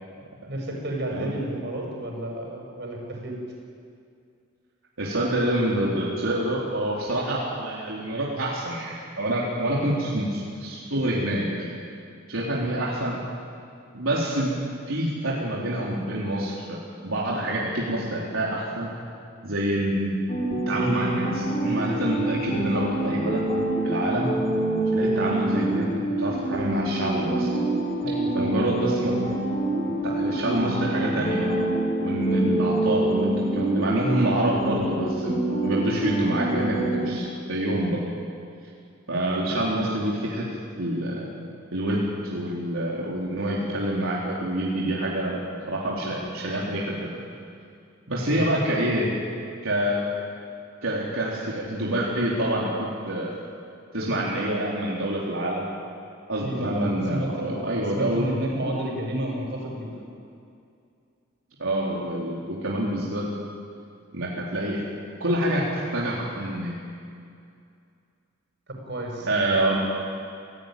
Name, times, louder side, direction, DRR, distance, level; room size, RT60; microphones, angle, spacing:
voice 1, 0.5-3.4 28.0-28.6 48.2-49.0 56.4-57.7 57.9-60.1 68.9-69.3, right 1 dB, 60° right, 0 dB, 6.7 m, -31 dB
voice 2, 5.0-11.7 12.3-13.2 13.9-14.5 14.9-16.8 17.0-18.9 19.4-20.2 20.5-23.4 23.8-24.3 24.9-27.5 28.3-29.1 29.8-31.5 32.0-38.0 39.1-40.5 40.8-41.3 41.7-45.4 45.7-47.1 48.1-49.1 49.6-50.1 50.8-53.3 53.9-55.6 56.3-58.3 61.6-63.3 64.1-64.8 65.2-66.7 69.2-69.8, right 1 dB, 85° right, -5 dB, 4.0 m, -26 dB
sound 1, 20.3-37.1, right 1 dB, 30° left, 5.0 m, -26 dB
28.0 x 17.5 x 9.3 m, 2.4 s
head